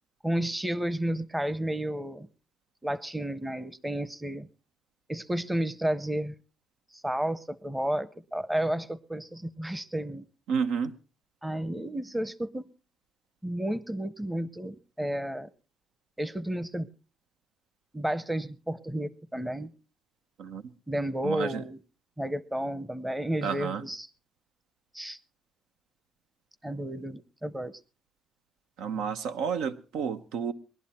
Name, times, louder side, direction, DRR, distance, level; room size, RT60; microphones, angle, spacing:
voice 1, 0.2-2.3 2.8-4.5 5.1-6.3 7.0-10.2 11.4-12.6 13.4-15.5 16.2-16.9 17.9-19.7 20.9-21.8 22.2-24.1 24.9-25.2 26.6-27.8, right 1 dB, 10° right, 20 dB, 0.8 m, -32 dB
voice 2, 10.5-10.9 20.4-20.6 21.2-21.6 23.4-23.8 28.8-30.5, right 6 dB, 90° right, 11 dB, 0.9 m, -30 dB
20.5 x 11.5 x 4.2 m, 0.35 s
cardioid pair, 100°, 0 cm